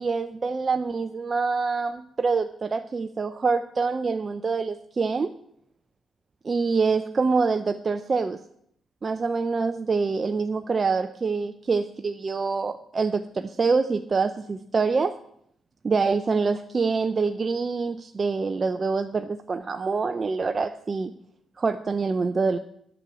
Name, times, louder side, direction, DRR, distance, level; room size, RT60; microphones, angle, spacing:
voice 1, 0.0-5.3 6.4-8.4 9.0-15.2 15.8-21.1 21.6-22.6, right 4 dB, 40° right, 8 dB, 0.6 m, -25 dB
8.9 x 6.2 x 8.3 m, 0.70 s
supercardioid pair, 55°, 0 cm